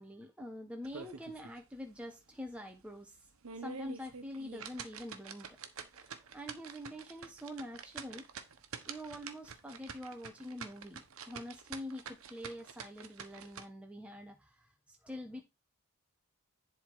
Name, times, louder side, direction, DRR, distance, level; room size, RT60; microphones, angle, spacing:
voice 1, 0.0-5.6 5.9-8.2 8.9-15.4, left 1 dB, 5° right, 0.9 m, -46 dB
sound 1, 0.8-1.6 2.0-2.1 2.6-2.7 3.3-13.7, right 6 dB, 70° right, 1.1 m, -47 dB
10.5 x 3.6 x 4.8 m
head